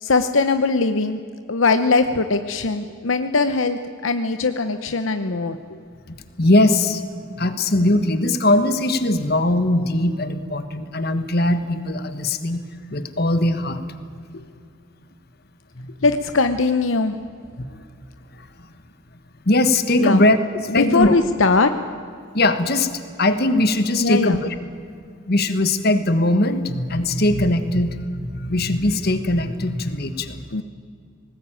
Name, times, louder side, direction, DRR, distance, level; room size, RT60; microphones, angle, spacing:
voice 1, 0.0-1.2 1.5-5.6 16.0-17.2 20.0-20.2 20.7-21.7 24.0-24.4 30.5-30.6, left 3 dB, 75° left, 9 dB, 0.9 m, -20 dB
voice 2, 6.1-7.0 7.4-12.6 12.9-13.8 15.8-16.1 17.6-17.9 18.4-18.5 19.4-20.4 20.7-21.1 22.3-22.9 23.2-24.5 25.3-30.4, left 1 dB, 50° left, 10 dB, 1.5 m, -20 dB
20.5 x 18.5 x 9.0 m, 2.3 s
head